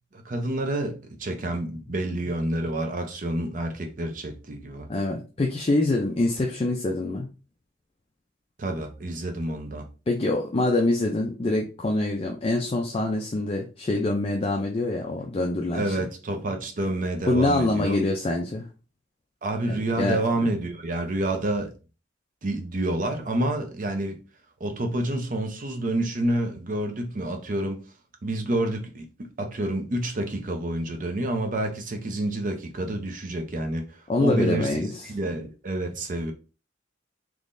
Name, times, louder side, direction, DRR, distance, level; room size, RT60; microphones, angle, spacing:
voice 1, 0.1-4.9 8.6-9.9 15.7-18.0 19.4-21.7 22.4-24.2 24.6-27.8 28.2-36.3, right 1 dB, 40° right, 0.6 m, -28 dB
voice 2, 4.9-7.3 10.1-16.0 17.3-18.7 19.7-20.5 34.1-35.0, left 2 dB, 30° left, 0.4 m, -25 dB
3.7 x 3.0 x 2.5 m
head